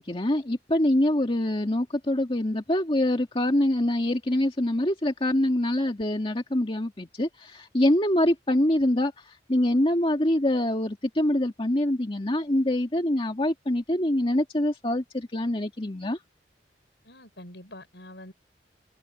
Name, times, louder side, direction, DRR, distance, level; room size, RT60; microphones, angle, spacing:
voice 1, 0.0-16.2, left 1 dB, 30° left, 2.0 m, -25 dB
voice 2, 17.0-18.3, left 1 dB, 75° left, 6.4 m, -45 dB
head